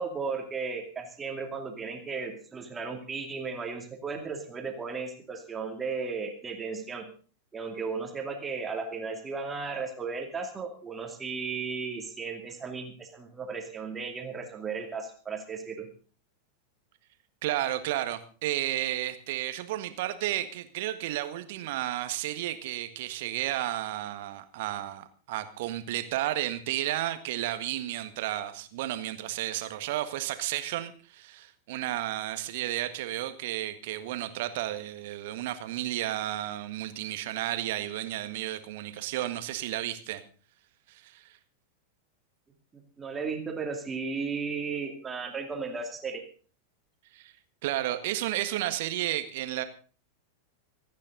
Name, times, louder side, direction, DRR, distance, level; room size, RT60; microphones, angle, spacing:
voice 1, 0.0-7.1 7.5-15.9 42.7-46.2, right 5 dB, 15° right, 4 dB, 2.6 m, -35 dB
voice 2, 17.4-40.2 40.9-41.4 47.1-47.3 47.6-49.6, right 14 dB, 50° right, 10 dB, 1.7 m, -32 dB
25.0 x 9.7 x 3.9 m, 0.40 s
figure-of-eight pair, 90°, 0 cm